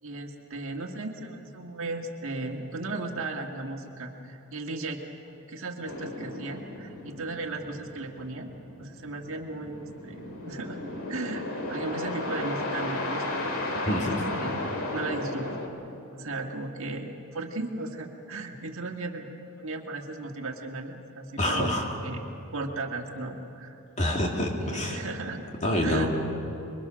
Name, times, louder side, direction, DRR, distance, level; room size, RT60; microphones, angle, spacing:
voice 1, 0.0-8.5 8.8-10.8 11.1-13.2 13.9-14.1 14.4-15.5 16.1-22.2 22.5-23.8 24.6-25.5 25.8-26.1, right 2 dB, 65° right, 2 dB, 1.8 m, -36 dB
sound 1, 5.8-15.7, left 2 dB, 70° left, 2.3 m, -34 dB
voice 2, 13.9-14.2 21.4-21.9 24.0-25.0 25.6-26.1, left 1 dB, 35° left, 1 dB, 2.5 m, -26 dB
26.0 x 23.0 x 6.3 m, 2.9 s
head